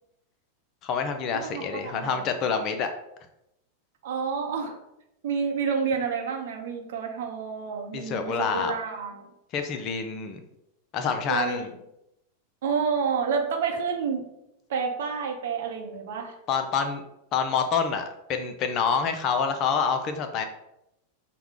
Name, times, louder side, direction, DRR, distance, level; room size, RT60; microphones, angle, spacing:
voice 1, 0.8-2.9 7.9-8.7 9.5-10.4 10.9-11.7 16.5-17.0 17.3-18.0 18.3-20.4, left 6 dB, 35° left, 7 dB, 0.5 m, -27 dB
voice 2, 1.3-2.4 4.0-4.8 5.2-9.3 11.3-11.7 12.6-14.2 14.7-16.3, right 6 dB, 55° right, 3 dB, 0.7 m, -29 dB
5.6 x 2.2 x 3.6 m, 0.84 s
figure-of-eight pair, 90°, 0 cm